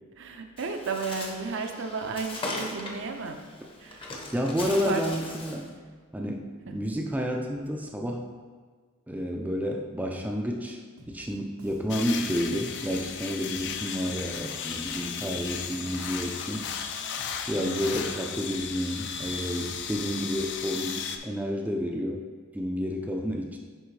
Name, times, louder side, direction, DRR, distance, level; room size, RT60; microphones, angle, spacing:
voice 1, 0.2-3.4 3.8-4.1 4.9-5.0 6.7-6.8 17.6-18.0, right 4 dB, 60° right, 5 dB, 0.5 m, -34 dB
Bird, 0.6-5.7, left 2 dB, 25° left, 0.7 m, -39 dB
voice 2, 4.3-5.7 6.1-8.3 9.1-10.8 11.1-16.6 17.5-22.2 22.5-23.6, equal, 5° right, 0 dB, 0.4 m, -30 dB
Bass guitar, 11.0-20.9, right 1 dB, 85° right, 1.0 m, -52 dB
sound 1, 11.9-21.2, left 7 dB, 55° left, 0.4 m, -35 dB
9.8 x 3.6 x 3.2 m, 1.5 s
head